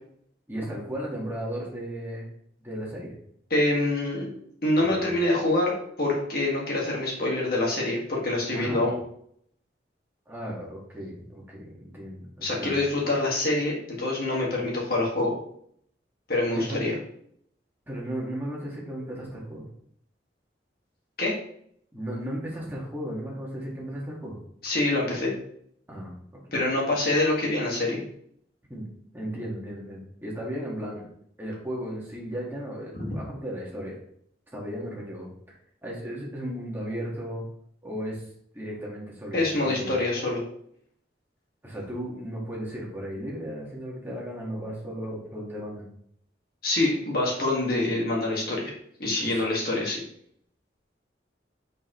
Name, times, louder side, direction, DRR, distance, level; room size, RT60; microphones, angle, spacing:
voice 1, 0.5-2.3 2.6-3.1 4.8-5.1 8.5-8.9 10.3-12.8 16.5-16.9 17.9-19.6 21.9-24.4 25.9-26.1 28.7-28.9 29.1-31.1 31.4-34.0 34.5-37.4 37.8-38.3 38.5-40.0 41.6-45.9 49.2-49.4, equal, 10° right, -4 dB, 1.7 m, -35 dB
voice 2, 3.5-4.3 4.6-5.7 6.0-8.9 12.4-15.3 16.3-16.9 21.2-21.4 24.6-25.3 26.5-28.0 33.0-33.1 39.3-40.4 46.6-48.6 49.0-50.0, left 2 dB, 55° left, -3 dB, 1.8 m, -25 dB
7.0 x 5.3 x 3.1 m, 0.67 s
head